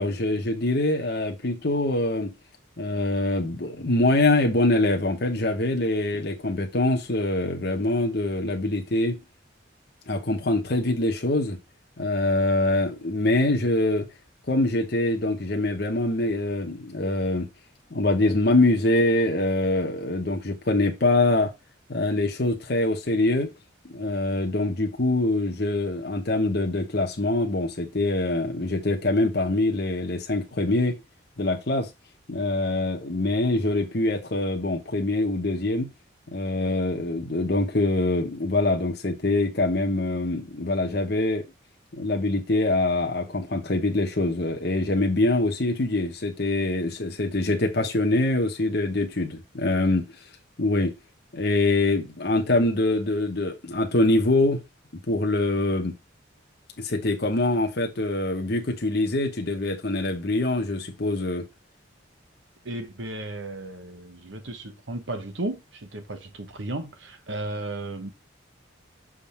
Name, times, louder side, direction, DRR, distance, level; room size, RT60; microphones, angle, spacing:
voice 1, 0.0-2.3 2.8-9.2 10.1-11.6 12.0-14.1 14.5-17.5 17.9-21.5 21.9-23.5 23.8-31.0 31.4-31.9 32.3-35.9 36.3-41.4 41.9-50.1 50.6-50.9 51.3-54.6 55.1-55.9 56.8-61.5, left 2 dB, 55° left, 1.0 m, -24 dB
voice 2, 62.6-68.1, right 2 dB, 75° right, 1.1 m, -34 dB
6.7 x 3.7 x 4.3 m
head